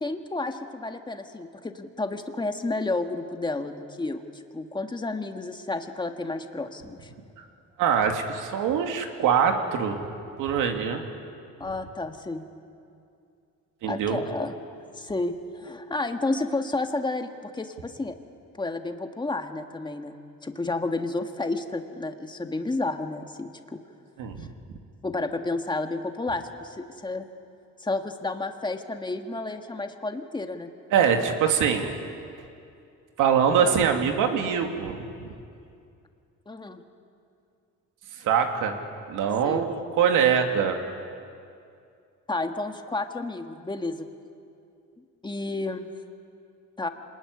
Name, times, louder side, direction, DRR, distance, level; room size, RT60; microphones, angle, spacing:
voice 1, 0.0-4.2 4.5-7.1 11.6-12.5 13.9-14.7 15.0-18.1 18.6-23.8 25.0-27.3 27.8-30.7 36.5-36.8 39.4-39.6 42.3-44.1 45.2-45.9 46.8-46.9, left 2 dB, 15° left, 6 dB, 1.7 m, -31 dB
voice 2, 7.8-10.1 10.4-11.0 13.8-14.2 24.2-24.5 30.9-31.9 33.2-35.3 38.2-38.7 39.1-40.8, right 7 dB, 85° right, 4 dB, 2.6 m, -23 dB
26.0 x 20.0 x 9.8 m, 2.5 s
cardioid pair, 115°, 30 cm